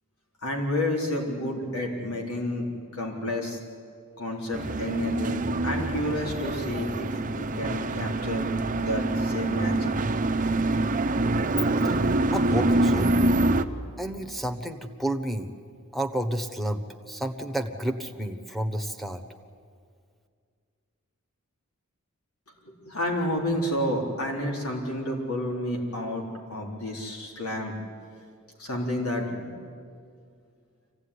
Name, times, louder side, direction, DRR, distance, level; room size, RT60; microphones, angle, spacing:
voice 1, 0.4-2.7 2.9-3.6 4.2-8.5 8.7-9.9 22.7-26.2 26.5-27.7 28.6-29.5, left 1 dB, 85° left, 0 dB, 3.8 m, -30 dB
sound 1, 4.5-13.6, right 2 dB, 40° right, 0.8 m, -25 dB
voice 2, 12.3-13.1 14.0-15.5 15.9-16.8 17.1-19.2, right 1 dB, ahead, 4 dB, 1.2 m, -30 dB
25.0 x 16.0 x 9.9 m, 2.2 s
head